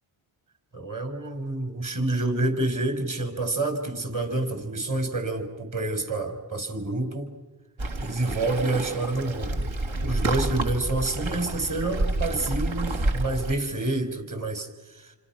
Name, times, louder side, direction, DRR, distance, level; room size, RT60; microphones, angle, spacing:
voice 1, 0.7-7.3 8.0-15.2, right 2 dB, 40° right, 6 dB, 5.6 m, -28 dB
Waves surf, 7.8-13.5, right 2 dB, 70° right, 2.8 m, -29 dB
30.0 x 25.5 x 6.2 m, 1.2 s
supercardioid pair, 45°, 49 cm